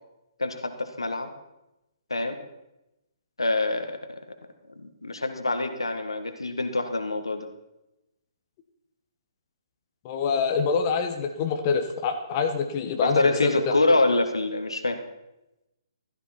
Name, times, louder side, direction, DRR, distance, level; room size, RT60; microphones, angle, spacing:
voice 1, 0.4-1.3 2.1-2.4 3.4-4.2 5.0-7.5 13.0-15.0, left 2 dB, 80° left, 7 dB, 1.7 m, -25 dB
voice 2, 10.0-13.7, left 5 dB, 30° left, 5 dB, 1.4 m, -25 dB
16.0 x 13.5 x 4.4 m, 0.93 s
figure-of-eight pair, 135°, 3 cm